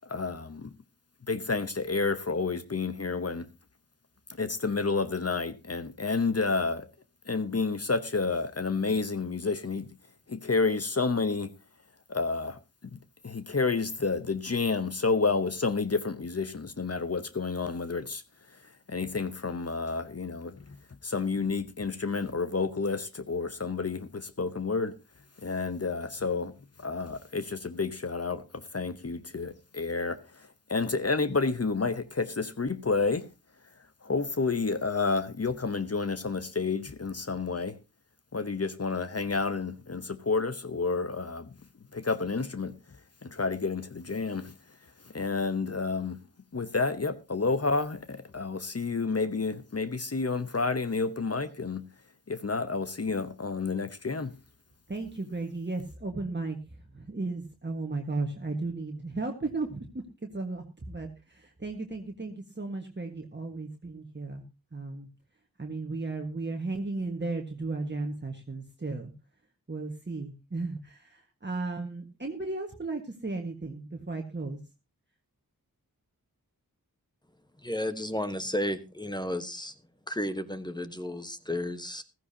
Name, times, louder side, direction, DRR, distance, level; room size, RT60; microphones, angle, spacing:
voice 1, 0.1-0.7 1.3-3.5 4.4-6.9 7.3-9.9 10.3-11.5 12.1-13.0 13.2-18.2 18.9-20.6 21.0-24.9 25.4-26.5 26.8-33.3 34.0-37.7 38.3-41.5 41.9-42.7 43.2-44.5 45.1-46.2 46.5-51.8 52.3-54.3, left 4 dB, 45° left, 0.9 m, -30 dB
voice 2, 54.9-64.4 64.7-65.1 65.6-69.1 69.7-74.6, right 3 dB, 30° right, 1.5 m, -35 dB
voice 3, 77.6-79.7 80.1-82.0, left 1 dB, 10° left, 1.1 m, -33 dB
15.0 x 14.0 x 2.8 m
wide cardioid pair, 70°, 36 cm